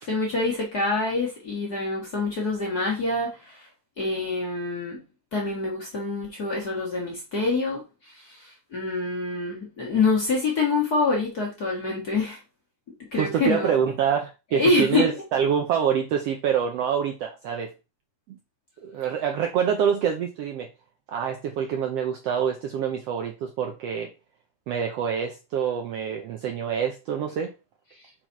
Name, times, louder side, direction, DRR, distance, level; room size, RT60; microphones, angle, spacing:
voice 1, 0.0-3.6 4.0-5.0 5.3-12.4 13.1-13.7 14.5-15.1, left 3 dB, 40° left, -3 dB, 1.6 m, -26 dB
voice 2, 13.2-17.7 18.3-18.4 18.8-20.7 21.1-24.1 24.7-27.5, right 8 dB, 75° right, 3 dB, 1.5 m, -26 dB
5.8 x 4.5 x 4.6 m, 0.30 s
omnidirectional pair, 3.6 m